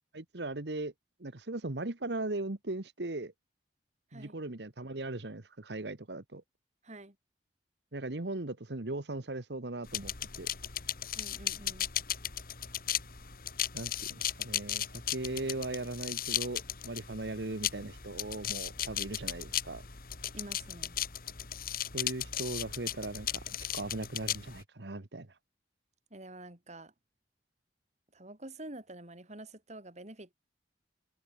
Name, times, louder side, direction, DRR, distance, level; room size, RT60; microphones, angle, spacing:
voice 1, 0.1-0.9 1.2-3.3 4.1-6.4 7.9-10.5 13.7-19.8 21.9-23.4 23.7-25.3, right 2 dB, 70° right, 1.4 m, -38 dB
voice 2, 6.8-7.2 11.1-11.9 20.3-21.0 26.1-26.9 28.1-30.3, right 1 dB, 40° right, 4.6 m, -47 dB
sound 1, 9.9-24.6, left 11 dB, 55° left, 2.7 m, -36 dB
head